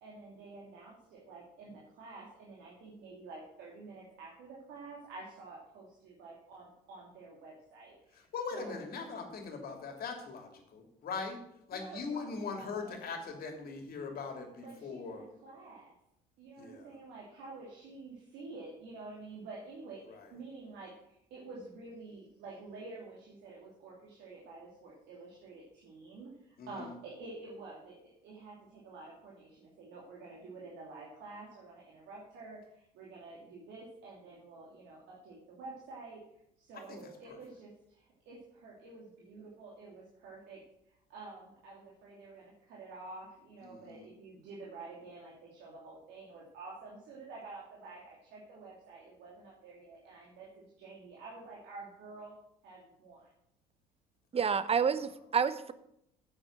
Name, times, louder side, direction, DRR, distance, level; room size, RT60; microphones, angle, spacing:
voice 1, 0.0-8.2 8.5-8.8 11.7-13.0 14.6-15.9 16.4-28.0 28.2-36.2 36.6-52.4 52.6-53.3, right 3 dB, 65° right, -3 dB, 2.8 m, -49 dB
voice 2, 8.1-11.4 11.7-15.3 16.6-16.9 20.1-20.3 26.6-26.9 36.7-37.4 43.6-44.1, left 4 dB, 55° left, 4 dB, 2.9 m, -41 dB
voice 3, 54.3-55.7, right 6 dB, 30° right, 14 dB, 1.0 m, -29 dB
8.6 x 8.2 x 7.6 m, 0.77 s
hypercardioid pair, 65°, 19 cm